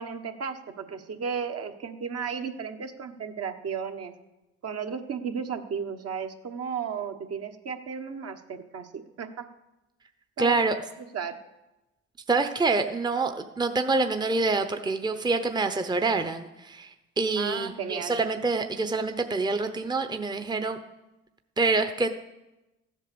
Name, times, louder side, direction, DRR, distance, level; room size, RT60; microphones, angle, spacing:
voice 1, 0.0-4.1 4.6-8.9 9.2-9.5 10.4-10.6 11.1-11.4 17.4-18.2, right 6 dB, 50° right, 6 dB, 1.4 m, -34 dB
voice 2, 10.4-10.8 12.3-20.8 21.6-22.1, right 3 dB, 15° right, 7 dB, 0.9 m, -26 dB
14.5 x 8.4 x 7.0 m, 1.0 s
supercardioid pair, 65°, 31 cm